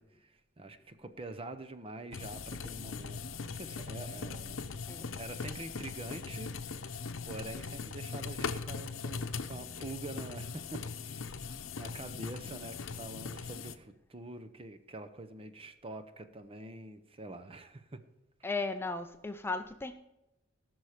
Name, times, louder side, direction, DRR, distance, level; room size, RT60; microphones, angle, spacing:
voice 1, 0.0-4.7 5.1-6.5 6.9-18.0, right 2 dB, 30° right, 10 dB, 0.8 m, -46 dB
sound 1, 2.1-13.8, left 5 dB, 90° left, 0.7 m, -40 dB
voice 2, 4.9-5.2 18.4-19.9, left 3 dB, 10° left, 7 dB, 0.5 m, -36 dB
18.0 x 6.3 x 5.0 m, 0.94 s
head